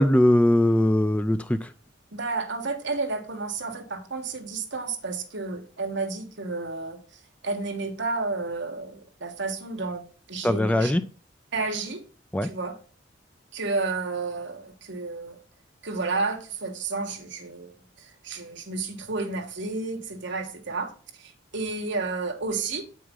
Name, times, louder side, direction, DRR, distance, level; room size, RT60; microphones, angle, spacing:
voice 1, 0.0-1.7 10.4-11.0 12.3-12.5, left 1 dB, 5° left, 0.3 m, -20 dB
voice 2, 2.1-7.0 7.4-10.9 11.5-12.0 12.4-12.7 13.5-15.4 15.8-20.9 21.2-22.8, right 3 dB, 65° right, 1.3 m, -31 dB
8.2 x 4.7 x 3.7 m
head